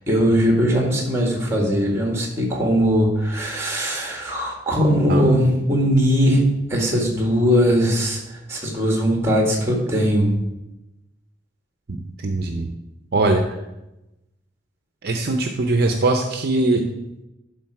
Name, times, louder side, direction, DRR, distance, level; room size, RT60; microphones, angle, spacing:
voice 1, 0.1-6.4 6.7-10.4, equal, 15° right, 0 dB, 1.8 m, -20 dB
voice 2, 11.9-12.7 13.1-13.4 15.0-16.9, right 2 dB, 55° right, 4 dB, 0.6 m, -21 dB
12.0 x 4.0 x 4.7 m, 0.95 s
head